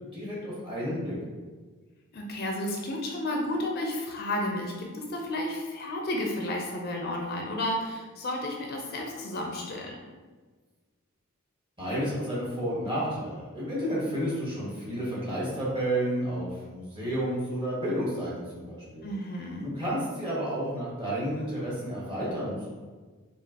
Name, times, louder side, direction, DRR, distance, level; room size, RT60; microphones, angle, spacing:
voice 1, 0.1-1.2 11.8-19.1 19.6-22.7, equal, 20° right, -7 dB, 1.2 m, -31 dB
voice 2, 2.1-10.0 19.0-19.7, left 1 dB, 45° left, 1 dB, 0.4 m, -32 dB
5.0 x 2.4 x 2.8 m, 1.4 s
head